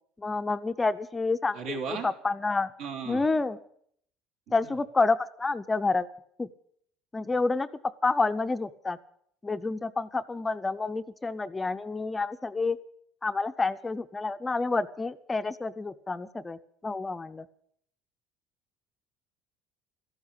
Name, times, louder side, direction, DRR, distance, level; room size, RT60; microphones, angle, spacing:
voice 1, 0.2-1.6 1.9-2.7 3.1-3.6 4.5-6.1 6.4-6.5 7.1-7.7 8.0-9.0 9.4-12.8 13.2-17.5, left 3 dB, 15° left, 10 dB, 0.6 m, -29 dB
voice 2, 1.5-2.1 2.8-3.2 4.5-4.7, right 5 dB, 70° right, 2 dB, 3.3 m, -36 dB
13.5 x 12.5 x 8.1 m, 0.65 s
cardioid pair, 120°, 0 cm